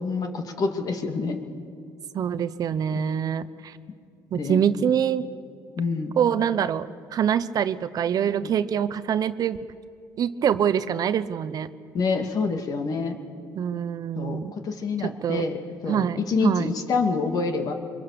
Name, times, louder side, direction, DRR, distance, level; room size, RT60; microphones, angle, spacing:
voice 1, 0.0-1.4 2.9-3.0 4.3-4.6 5.8-6.1 11.9-13.2 14.2-15.6 15.8-17.7, left 4 dB, 55° left, 5 dB, 2.3 m, -27 dB
voice 2, 2.1-3.7 4.3-5.3 6.2-9.6 10.2-11.7 13.5-14.5 15.0-15.5 15.9-16.8, right 8 dB, 50° right, 14 dB, 0.8 m, -25 dB
24.5 x 22.5 x 6.8 m, 2.4 s
cardioid pair, 100°, 8 cm